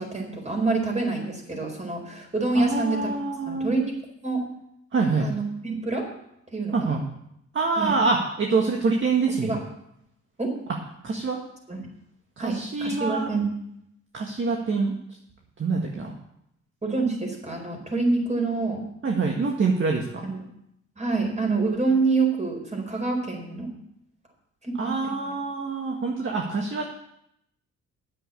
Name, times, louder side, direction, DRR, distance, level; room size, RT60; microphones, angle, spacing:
voice 1, 0.0-3.1 3.5-3.9 4.2-4.4 5.2-6.1 6.5-6.9 7.8-8.0 9.3-9.6 10.4-10.5 11.7-11.9 12.4-13.5 16.8-18.9 20.2-20.4 21.0-23.7 24.6-25.3, right 3 dB, 25° right, 2 dB, 4.4 m, -27 dB
voice 2, 2.5-3.7 4.9-5.3 6.7-7.0 7.5-9.6 11.0-11.4 12.4-13.3 14.1-14.9 15.6-16.1 19.0-20.0 24.8-26.8, right 4 dB, 40° right, 1 dB, 1.8 m, -25 dB
9.7 x 7.8 x 8.4 m, 0.77 s
cardioid pair, 90°, 30 cm